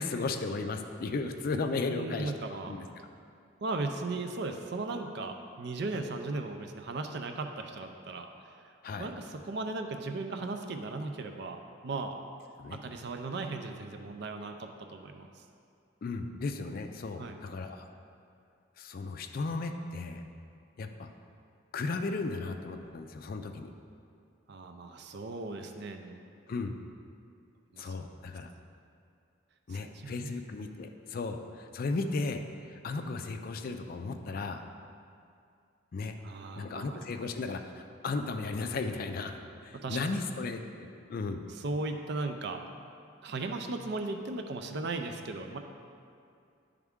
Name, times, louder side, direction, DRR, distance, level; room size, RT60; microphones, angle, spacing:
voice 1, 0.0-2.3 2.7-2.9 8.8-9.1 12.6-12.8 16.0-17.8 18.8-20.2 20.8-21.1 21.7-23.7 26.5-26.8 27.8-28.5 29.7-32.4 32.7-34.6 35.9-36.2 36.6-37.7 38.0-39.4 39.6-41.4, left 3 dB, 45° left, 6 dB, 0.4 m, -35 dB
voice 2, 1.9-2.8 3.6-8.3 9.0-12.2 12.7-15.4 17.2-17.4 24.5-26.2 27.7-27.9 29.7-30.4 36.2-37.0 39.7-40.1 41.5-42.6 43.2-45.6, right 3 dB, 55° right, 5 dB, 0.5 m, -37 dB
10.5 x 3.5 x 3.6 m, 2.4 s
head